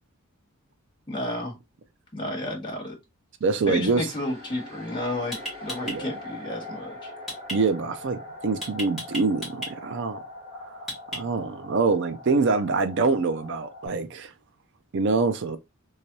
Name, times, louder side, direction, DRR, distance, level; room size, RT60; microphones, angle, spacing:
voice 1, 1.1-1.5 2.1-3.0 3.7-7.1, left 1 dB, 20° left, 1.5 m, -32 dB
sound 1, 3.4-13.9, left 1 dB, 40° right, 2.1 m, -42 dB
voice 2, 3.4-4.1 5.8-6.0 7.5-10.2 11.1-14.3 14.9-15.6, right 4 dB, 55° right, 0.4 m, -25 dB
sound 2, 5.3-6.0 7.3-7.6 8.6-9.7 10.9-11.5, equal, ahead, 2.0 m, -34 dB
3.4 x 3.2 x 2.6 m
head